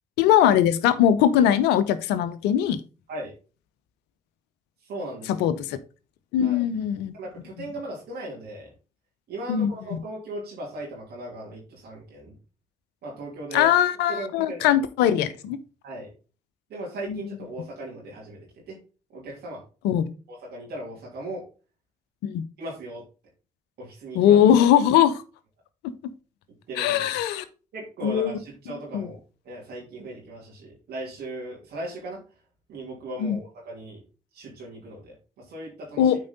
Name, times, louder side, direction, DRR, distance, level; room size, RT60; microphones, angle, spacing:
voice 1, 0.2-2.8 5.4-5.8 6.3-7.1 9.5-10.0 13.5-15.6 17.1-17.2 19.8-20.1 22.3-22.4 24.1-25.1 25.8-25.9 26.8-27.4 28.0-28.3 28.9-29.1 33.2-33.4 36.0-36.2, left 10 dB, 80° left, 0.7 m, -20 dB
voice 2, 4.9-5.5 6.4-6.6 7.2-8.7 9.3-12.3 13.0-13.7 14.1-14.7 15.8-16.1 16.7-18.8 19.1-19.6 20.3-21.4 22.6-23.0 23.8-24.4 26.7-27.2 27.7-29.2 29.4-32.2 32.7-34.0 34.3-36.1, right 1 dB, 75° right, 2.9 m, -37 dB
8.5 x 4.6 x 4.0 m
hypercardioid pair, 40°, 17 cm